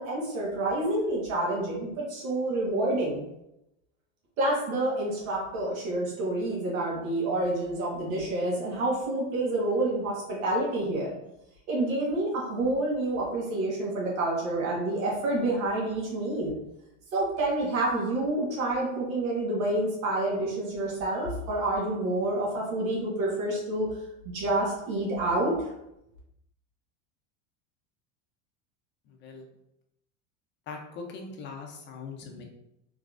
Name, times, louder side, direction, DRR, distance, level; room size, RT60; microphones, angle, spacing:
voice 1, 0.0-3.2 4.4-11.1 11.7-16.5 17.1-23.9 24.2-25.5, right 2 dB, 85° right, -4 dB, 1.4 m, -28 dB
voice 2, 29.1-29.5 30.7-32.4, left 4 dB, 30° left, 2 dB, 0.4 m, -41 dB
3.6 x 3.1 x 2.4 m, 0.85 s
supercardioid pair, 140°, 39 cm